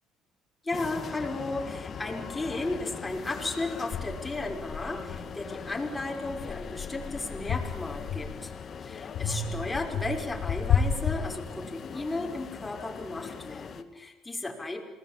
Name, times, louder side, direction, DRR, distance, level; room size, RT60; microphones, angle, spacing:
voice 1, 0.6-8.5 8.9-14.8, left 2 dB, 15° left, 1 dB, 5.6 m, -34 dB
sound 1, 0.7-13.8, left 6 dB, 45° left, 2.4 m, -41 dB
sound 2, 3.1-3.2 3.9-5.8 6.2-8.6 9.1-11.9, left 6 dB, 60° left, 2.8 m, -32 dB
28.0 x 20.0 x 8.6 m, 1.2 s
cardioid pair, 100°, 0 cm